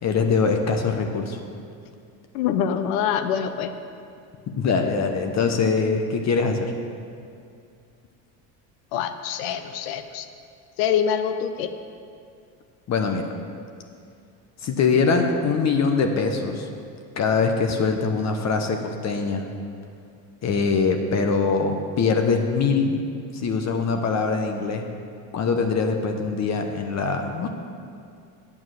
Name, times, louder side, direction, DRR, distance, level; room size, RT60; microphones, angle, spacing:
voice 1, 0.0-1.4 4.5-6.7 12.9-13.2 14.6-16.7 17.2-19.5 20.4-23.0 23.3-24.9 25.3-27.5, left 4 dB, 40° left, 5 dB, 0.9 m, -23 dB
voice 2, 2.3-3.7 8.9-10.3 10.8-11.7, left 8 dB, 85° left, 9 dB, 0.6 m, -25 dB
8.5 x 7.2 x 6.3 m, 2.4 s
supercardioid pair, 100°, 41 cm